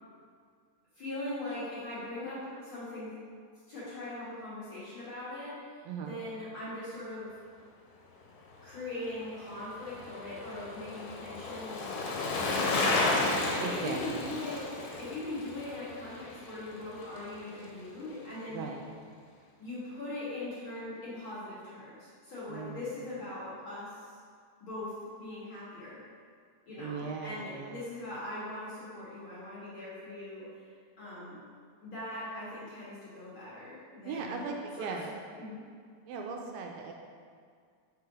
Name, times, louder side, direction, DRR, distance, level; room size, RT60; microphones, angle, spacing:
voice 1, 0.9-3.2 3.7-7.3 8.6-14.7 15.0-18.6 19.6-24.2 24.6-26.0 26.7-31.4 31.8-34.4 34.8-34.9 35.4-35.6, left 2 dB, 55° left, -9 dB, 1.4 m, -41 dB
voice 2, 5.9-6.2 13.6-14.3 18.5-18.8 22.5-22.9 26.8-27.8 34.1-35.1 36.1-36.9, right 5 dB, 85° right, 1 dB, 2.1 m, -38 dB
Bicycle, 8.9-17.3 17.6-17.7, left 2 dB, 85° left, 3.0 m, -33 dB
6.7 x 4.8 x 4.9 m, 2.1 s
omnidirectional pair, 4.5 m